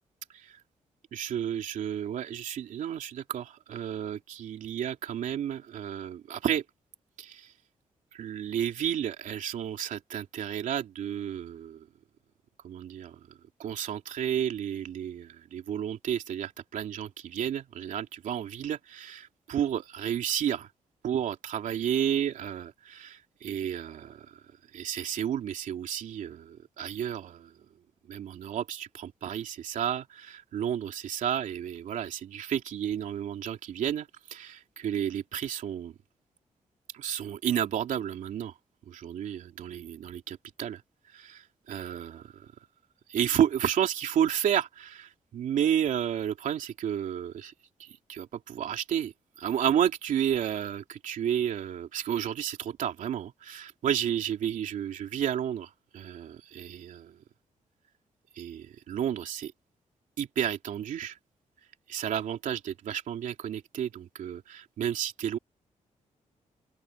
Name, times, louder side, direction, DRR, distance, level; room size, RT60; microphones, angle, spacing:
voice 1, 1.1-6.6 7.2-7.5 8.1-11.8 12.6-13.1 13.6-20.7 21.0-24.3 24.7-27.5 28.1-35.9 36.9-38.5 38.9-40.8 41.1-42.3 43.1-47.5 48.1-49.1 49.4-57.1 58.4-59.5 60.2-61.2 61.9-65.4, right 9 dB, 85° right, 3.0 m, -31 dB
open air
cardioid pair, 110°, 13 cm